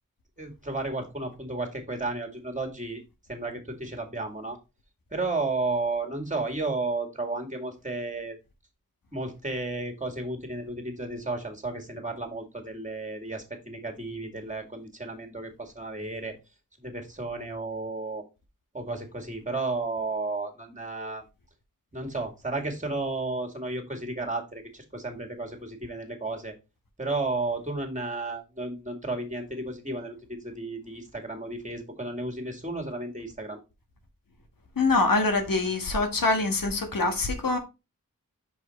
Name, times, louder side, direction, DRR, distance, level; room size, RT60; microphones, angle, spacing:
voice 1, 0.4-3.0 3.3-4.6 5.1-8.4 9.1-16.4 16.8-18.2 18.7-21.2 21.9-26.5 27.0-33.6, right 2 dB, 25° right, 2.1 m, -33 dB
voice 2, 34.8-37.6, left 3 dB, 90° left, 1.5 m, -24 dB
5.8 x 5.0 x 4.1 m
wide cardioid pair, 50°, 33 cm